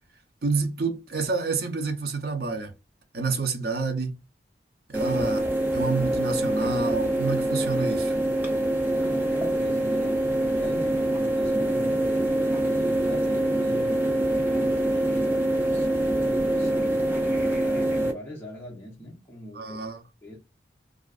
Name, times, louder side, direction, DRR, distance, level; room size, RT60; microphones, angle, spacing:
voice 1, 0.4-2.7 3.1-4.2 4.9-5.5 5.7-8.1 19.6-20.0, right 4 dB, 60° right, 0.6 m, -28 dB
sound 1, 4.9-18.1, right 1 dB, 10° right, 0.5 m, -25 dB
voice 2, 8.9-10.3 10.5-12.1 12.7-14.1 14.5-19.8 20.2-20.4, left 1 dB, 15° left, 0.8 m, -42 dB
2.4 x 2.4 x 2.3 m
head